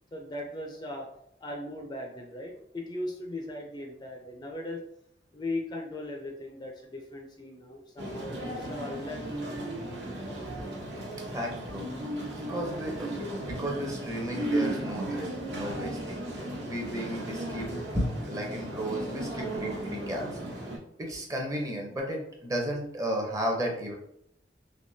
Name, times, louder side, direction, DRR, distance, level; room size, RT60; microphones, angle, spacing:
voice 1, 0.1-1.1 1.4-4.8 5.3-9.7, left 1 dB, 25° left, 1 dB, 0.4 m, -38 dB
sound 1, 8.0-20.8, right 1 dB, 80° right, 1.0 m, -35 dB
voice 2, 11.3-11.9 12.5-16.2 16.6-17.7 17.9-20.3 21.0-23.9, equal, 20° right, 0 dB, 0.7 m, -33 dB
3.4 x 3.0 x 2.6 m, 0.73 s
head